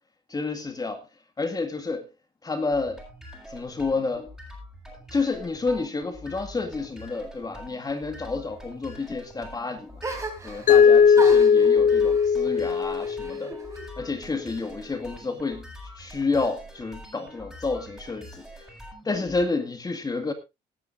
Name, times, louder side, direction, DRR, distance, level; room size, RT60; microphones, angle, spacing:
voice 1, 0.3-1.0 1.4-2.1 2.4-3.0 3.5-4.3 5.1-9.9 10.4-13.5 14.0-15.7 16.0-18.5 19.0-20.3, left 3 dB, 20° left, 2.0 m, -30 dB
sound 1, 2.7-19.5, equal, ahead, 7.6 m, -45 dB
sound 2, 10.0-10.8 11.1-13.9 14.2-15.0, right 2 dB, 20° right, 3.4 m, -37 dB
Mallet percussion, 10.7-13.6, left 6 dB, 55° left, 0.6 m, -18 dB
19.5 x 11.0 x 2.6 m
cardioid pair, 110°, 17 cm